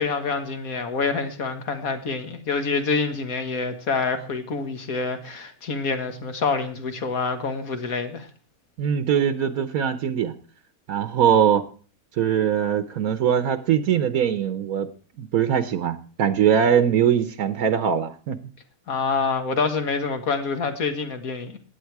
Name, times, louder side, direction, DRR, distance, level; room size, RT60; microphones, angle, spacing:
voice 1, 0.0-8.3 18.9-21.6, left 4 dB, 75° left, 2.0 m, -26 dB
voice 2, 8.8-10.3 10.9-11.6 12.2-14.9 15.2-18.4, right 8 dB, 80° right, 1.3 m, -21 dB
15.5 x 9.9 x 4.7 m
omnidirectional pair, 1.5 m